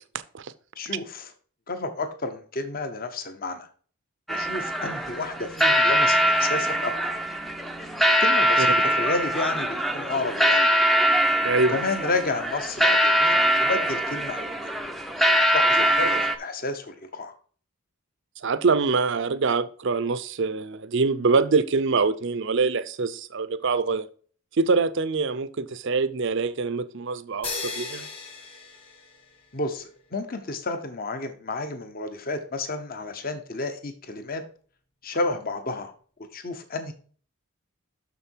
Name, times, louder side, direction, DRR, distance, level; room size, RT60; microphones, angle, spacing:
voice 1, 0.8-1.3 1.7-3.7 4.3-6.9 8.2-10.7 11.7-14.5 15.5-17.3 29.5-34.4 35.0-35.9 36.3-36.9, left 3 dB, 40° left, 0.9 m, -31 dB
sound 1, 4.3-16.4, equal, ahead, 0.5 m, -22 dB
voice 2, 11.4-11.7 18.4-24.1 24.6-28.0, right 4 dB, 55° right, 0.5 m, -24 dB
sound 2, 27.4-29.6, left 3 dB, 25° left, 1.4 m, -36 dB
6.8 x 6.3 x 4.5 m
head